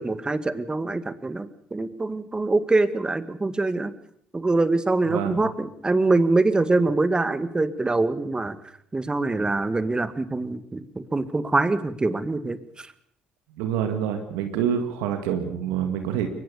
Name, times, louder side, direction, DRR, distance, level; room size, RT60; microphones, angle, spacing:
voice 1, 0.0-3.9 4.3-8.6 8.9-12.9, right 2 dB, 25° right, 13 dB, 2.0 m, -24 dB
voice 2, 5.1-5.4 13.6-16.3, right 9 dB, 85° right, 6 dB, 2.0 m, -26 dB
23.0 x 20.5 x 7.0 m, 0.66 s
hypercardioid pair, 60°, 4 cm